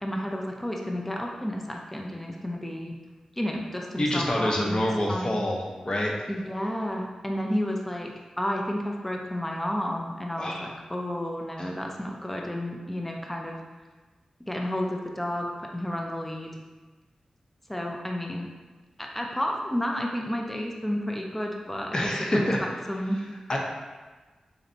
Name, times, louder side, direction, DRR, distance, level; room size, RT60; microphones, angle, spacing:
voice 1, 0.0-3.0 3.4-5.4 6.3-8.1 8.4-13.6 14.5-16.5 17.7-18.5 19.0-23.2, equal, 10° left, 0 dB, 0.5 m, -31 dB
voice 2, 4.0-6.1 10.4-10.7 21.9-22.6 23.5-23.6, left 1 dB, 40° left, -1 dB, 0.7 m, -26 dB
3.9 x 3.2 x 2.7 m, 1.3 s
cardioid pair, 55°, 2 cm